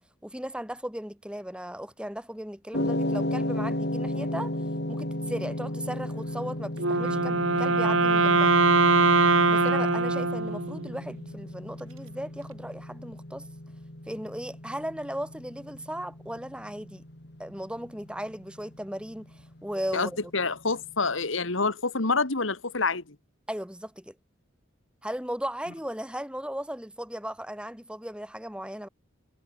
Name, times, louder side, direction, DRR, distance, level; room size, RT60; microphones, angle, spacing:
voice 1, 0.0-4.5 4.9-8.5 9.5-13.5 14.1-17.0 17.4-19.3 19.6-20.2 23.5-24.1 25.0-28.9, equal, 5° right, 7.6 m, -36 dB
sound 1, 2.7-21.0, left 1 dB, 55° left, 3.1 m, -35 dB
Wind instrument woodwind instrument, 6.8-11.0, right 3 dB, 90° right, 6.2 m, -22 dB
voice 2, 19.9-23.0, left 3 dB, 75° left, 2.2 m, -27 dB
head